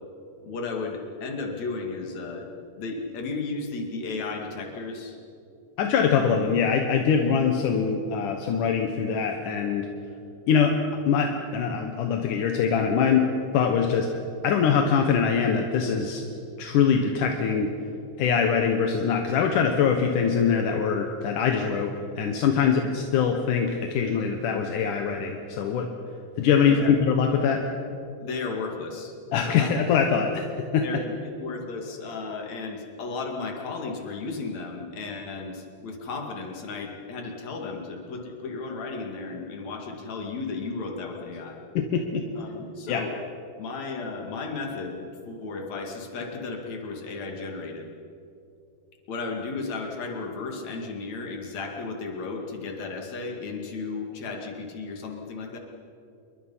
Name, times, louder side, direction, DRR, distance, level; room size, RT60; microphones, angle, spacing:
voice 1, 0.4-2.5 2.8-5.2 22.6-22.7 26.7-26.9 28.2-29.1 29.6-29.7 30.8-41.6 42.4-43.1 43.6-47.9 49.1-55.6, left 4 dB, 45° left, 2 dB, 3.3 m, -34 dB
voice 2, 5.8-9.9 10.5-10.8 11.1-14.1 14.4-16.2 16.6-17.7 18.2-25.9 26.4-27.6 29.3-30.9 41.8-42.3 42.9-43.0, left 6 dB, 65° left, 3 dB, 2.2 m, -23 dB
27.5 x 22.5 x 5.7 m, 2.6 s
omnidirectional pair, 4.8 m